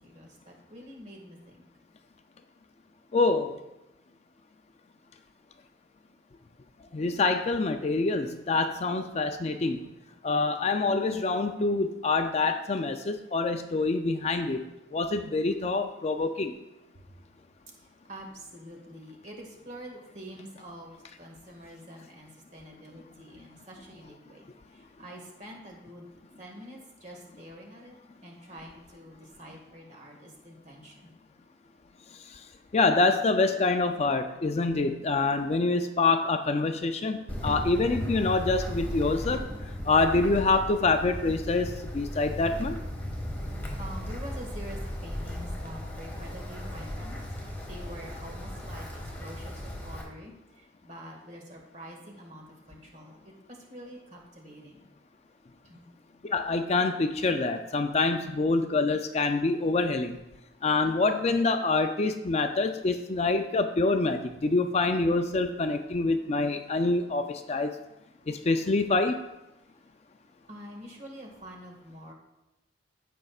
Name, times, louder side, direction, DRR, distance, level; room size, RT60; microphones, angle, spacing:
voice 1, 0.0-1.9 16.9-17.1 17.8-26.1 26.4-27.9 28.2-31.3 34.6-34.8 43.8-47.2 47.7-54.8 55.6-55.8 70.5-72.1, equal, 40° right, 0 dB, 1.8 m, -46 dB
voice 2, 3.1-3.6 6.9-9.9 10.2-14.6 14.9-16.5 32.7-39.5 39.8-42.8 56.2-60.2 60.6-67.7 68.3-69.2, left 3 dB, 35° left, 7 dB, 0.4 m, -26 dB
Wind, 37.3-50.0, left 1 dB, 10° left, 1.6 m, -36 dB
15.5 x 5.4 x 2.4 m, 0.95 s
head